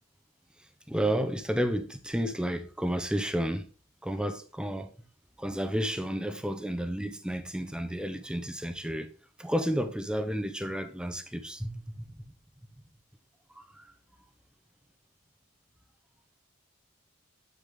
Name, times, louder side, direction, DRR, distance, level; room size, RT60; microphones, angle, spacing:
voice 1, 0.9-3.7 4.0-4.9 5.4-9.1 9.4-11.9 13.8-13.9, equal, 5° right, 0.9 m, -31 dB
9.0 x 8.4 x 3.8 m
head